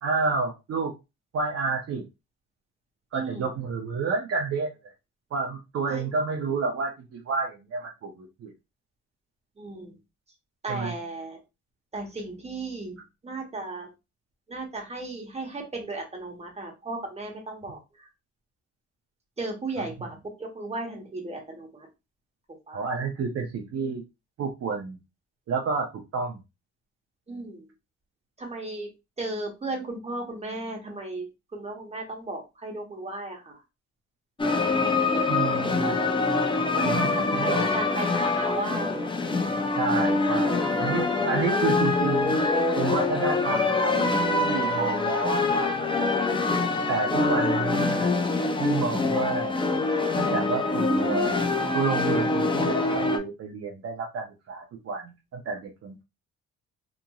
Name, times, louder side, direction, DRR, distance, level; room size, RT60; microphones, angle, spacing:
voice 1, 0.0-0.9 1.3-2.0 3.1-4.7 5.3-8.5 10.7-10.9 22.7-24.0 24.4-25.0 25.5-26.4 35.3-35.9 36.8-37.7 39.8-42.4 42.7-46.2 46.9-48.1 48.6-49.6 50.1-51.5 51.7-56.0, right 4 dB, 55° right, 2 dB, 0.6 m, -30 dB
voice 2, 3.1-3.5 5.9-6.0 9.6-9.9 10.6-11.4 11.9-13.0 13.2-13.9 14.5-18.1 19.4-21.9 22.7-22.8 27.3-27.7 28.4-28.9 29.2-31.3 31.5-33.6 35.1-36.0 36.7-39.1, right 2 dB, 20° right, 1 dB, 1.0 m, -35 dB
sound 1, 34.4-53.2, left 3 dB, 15° left, 0.5 m, -25 dB
2.9 x 2.5 x 2.3 m, 0.25 s
cardioid pair, 90°, 30 cm